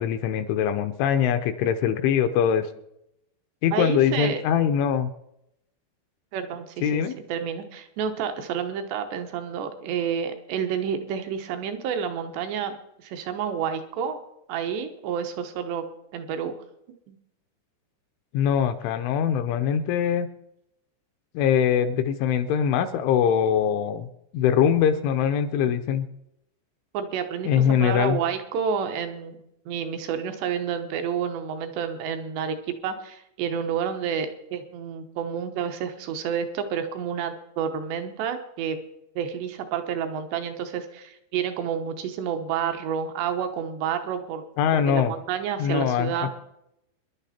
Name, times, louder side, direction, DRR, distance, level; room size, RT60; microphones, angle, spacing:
voice 1, 0.0-2.7 3.6-5.1 6.8-7.1 18.3-20.3 21.3-24.1 24.3-26.1 27.4-28.2 44.6-45.1 45.6-46.1, left 8 dB, 80° left, 9 dB, 2.9 m, -22 dB
voice 2, 3.7-4.4 6.3-14.2 14.5-15.9 16.1-16.5 17.1-17.2 26.9-29.4 29.7-38.8 39.2-44.4 44.9-46.3, right 7 dB, 70° right, 7 dB, 2.8 m, -29 dB
25.0 x 11.0 x 4.3 m, 0.84 s
omnidirectional pair, 5.9 m